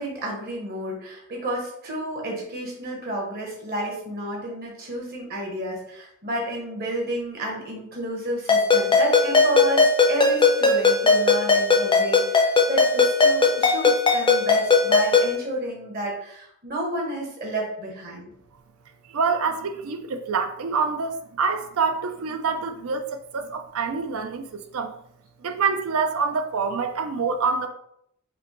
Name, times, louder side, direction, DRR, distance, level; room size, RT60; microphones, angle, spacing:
voice 1, 0.0-18.3, right 1 dB, 45° right, -1 dB, 1.0 m, -31 dB
Ringtone, 8.5-15.3, left 4 dB, 20° left, 0.5 m, -19 dB
voice 2, 19.1-24.9 25.4-27.7, right 5 dB, 70° right, 7 dB, 0.4 m, -26 dB
5.0 x 2.2 x 3.0 m, 0.72 s
head